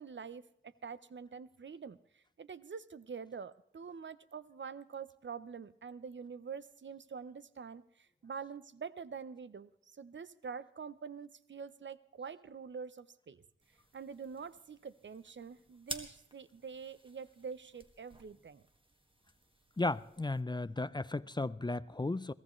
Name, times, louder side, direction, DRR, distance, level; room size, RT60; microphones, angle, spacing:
voice 1, 0.0-13.4 13.9-18.6, right 6 dB, 65° right, 16 dB, 0.7 m, -46 dB
sound 1, 13.6-20.4, right 1 dB, 25° right, 1.8 m, -52 dB
voice 2, 19.8-22.3, left 2 dB, 20° left, 17 dB, 0.5 m, -35 dB
22.0 x 16.5 x 3.1 m, 0.72 s
wide cardioid pair, 65°, 20 cm